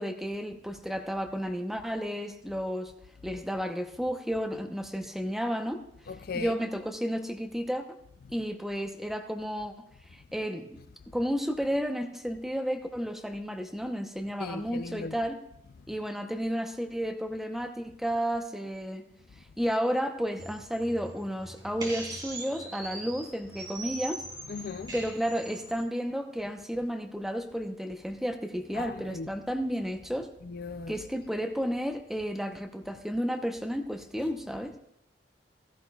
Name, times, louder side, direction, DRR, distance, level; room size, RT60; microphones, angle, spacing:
voice 1, 0.0-2.9 3.2-5.8 6.3-7.8 8.3-9.9 10.3-10.7 11.1-15.4 15.9-19.0 19.6-24.2 24.9-30.3 30.9-34.7, equal, ahead, 0.8 m, -32 dB
voice 2, 6.1-6.5 14.4-15.2 24.5-24.9 28.7-29.3 30.4-31.0, left 4 dB, 55° left, 0.4 m, -37 dB
sound 1, 20.4-25.8, right 2 dB, 25° right, 2.9 m, -42 dB
15.5 x 13.0 x 2.4 m
head